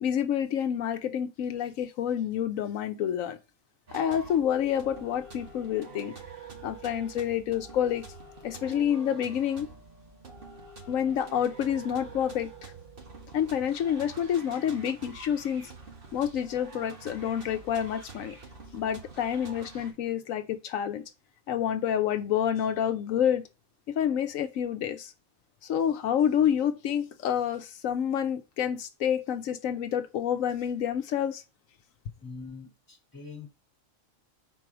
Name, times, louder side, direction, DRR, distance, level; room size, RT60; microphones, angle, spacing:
voice 1, 0.0-3.4 3.9-6.1 6.6-8.0 8.4-9.7 10.9-12.7 13.3-15.7 16.1-18.4 18.7-21.0 21.5-23.4 23.9-25.1 25.6-31.4, left 9 dB, 85° left, 1.1 m, -28 dB
sound 1, 3.9-19.9, right 4 dB, 45° right, 1.8 m, -46 dB
voice 2, 32.2-33.5, left 4 dB, 15° left, 2.4 m, -43 dB
4.7 x 4.6 x 5.9 m
omnidirectional pair, 1.4 m